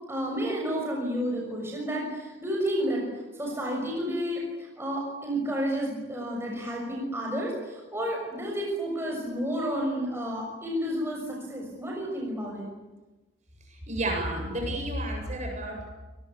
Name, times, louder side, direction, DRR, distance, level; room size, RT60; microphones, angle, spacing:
voice 1, 0.1-3.1 3.3-12.7, equal, 10° right, -1 dB, 6.6 m, -31 dB
voice 2, 13.9-15.9, right 1 dB, 35° right, 2 dB, 7.8 m, -31 dB
29.0 x 21.0 x 8.4 m, 1.1 s
head